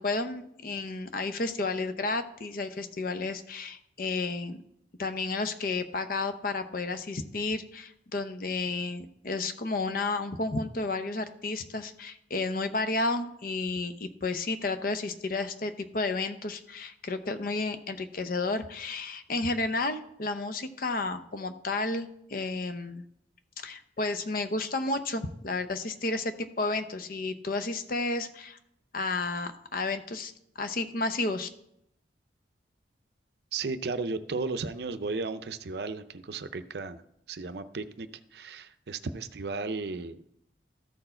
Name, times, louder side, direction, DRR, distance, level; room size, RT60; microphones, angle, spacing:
voice 1, 0.0-4.6 5.0-23.0 23.6-28.6 28.9-31.5, left 3 dB, 50° left, 9 dB, 0.7 m, -32 dB
voice 2, 33.5-37.0 37.3-40.2, right 3 dB, 60° right, 11 dB, 0.5 m, -35 dB
13.5 x 4.6 x 4.4 m, 0.76 s
head